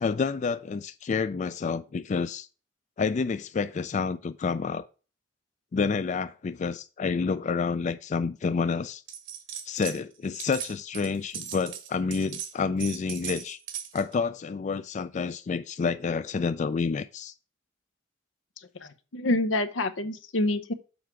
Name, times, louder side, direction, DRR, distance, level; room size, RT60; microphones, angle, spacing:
voice 1, 0.0-2.5 3.0-4.9 5.7-9.0 9.7-13.6 13.9-17.3, left 5 dB, 40° left, 0.3 m, -29 dB
sound 1, 9.1-10.0 10.2-14.1, right 9 dB, 75° right, 1.3 m, -38 dB
voice 2, 18.8-20.7, left 1 dB, 85° left, 0.8 m, -27 dB
7.2 x 4.6 x 5.9 m
head